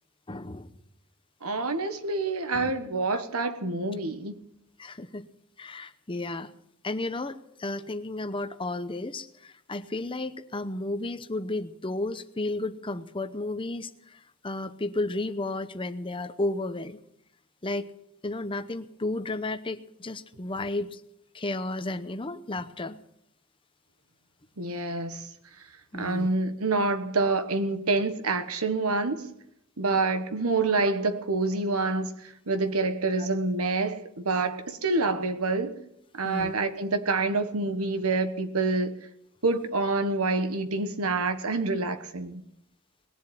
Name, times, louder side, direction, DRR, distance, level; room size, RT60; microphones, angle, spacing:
voice 1, 0.3-0.7 2.5-2.7 4.8-5.3 5.6-6.5 6.8-17.0 17.6-17.9 18.2-21.0 21.3-23.0 25.9-26.3 33.2-33.3 36.2-36.5, left 2 dB, 25° left, 0.8 m, -33 dB
voice 2, 1.4-4.4 24.6-25.3 25.9-29.3 29.8-35.8 36.1-38.9 39.4-42.4, right 3 dB, 80° right, 1.4 m, -27 dB
20.0 x 7.4 x 9.1 m
head